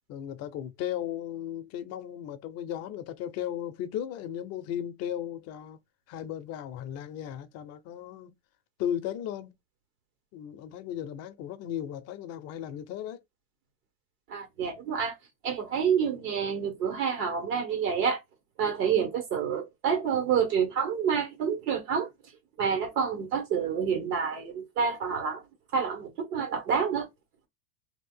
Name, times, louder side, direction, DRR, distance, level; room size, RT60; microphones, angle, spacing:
voice 1, 0.1-5.8 6.1-8.3 8.8-9.5 10.3-13.2, left 10 dB, 35° left, 0.4 m, -36 dB
voice 2, 14.3-15.1 15.4-18.2 18.6-22.1 22.6-25.4 25.7-27.1, right 7 dB, 70° right, 1.6 m, -28 dB
2.8 x 2.4 x 3.7 m
supercardioid pair, 120°, 49 cm